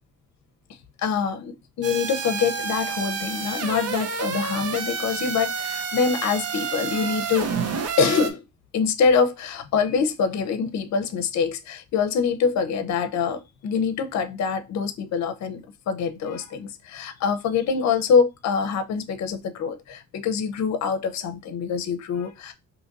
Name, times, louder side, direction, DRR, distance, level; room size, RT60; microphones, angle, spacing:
voice 1, 1.0-7.5 8.0-8.4 8.7-22.5, left 6 dB, 65° left, 0.7 m, -25 dB
sound 1, 1.8-8.3, right 6 dB, 55° right, 0.7 m, -29 dB
2.8 x 2.5 x 3.9 m
cardioid pair, 90°, 30 cm